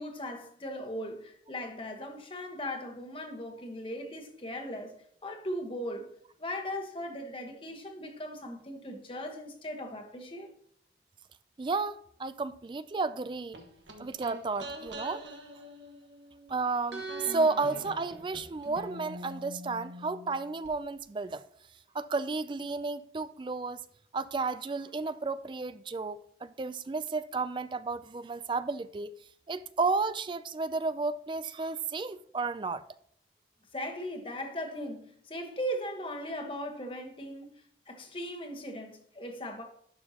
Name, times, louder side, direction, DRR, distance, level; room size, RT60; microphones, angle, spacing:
voice 1, 0.0-4.9 5.2-6.1 6.4-10.5 33.7-39.6, equal, 30° left, 1.2 m, -38 dB
voice 2, 11.6-13.6 14.0-15.2 16.5-21.4 21.9-23.8 24.1-29.1 29.5-32.8, right 3 dB, 25° right, 0.3 m, -32 dB
sound 1, 13.5-16.5 16.9-20.7 21.0-21.1, right 1 dB, 85° right, 1.4 m, -43 dB
11.5 x 6.4 x 2.9 m
head